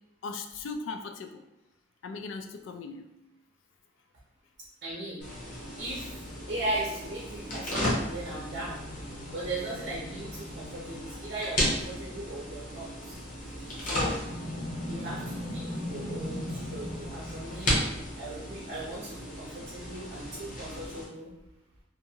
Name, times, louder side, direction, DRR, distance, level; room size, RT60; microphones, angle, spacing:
voice 1, 0.2-1.4 2.0-3.1, left 4 dB, 75° left, 6 dB, 0.3 m, -38 dB
voice 2, 4.8-5.3 5.8-6.1 6.5-8.8 9.3-13.2 13.8-14.2 14.9-17.7 18.1-21.3, right 2 dB, 55° right, -5 dB, 0.6 m, -38 dB
sound 1, 5.2-21.0, left 1 dB, 40° left, 0.7 m, -34 dB
2.5 x 2.4 x 2.7 m, 0.93 s
head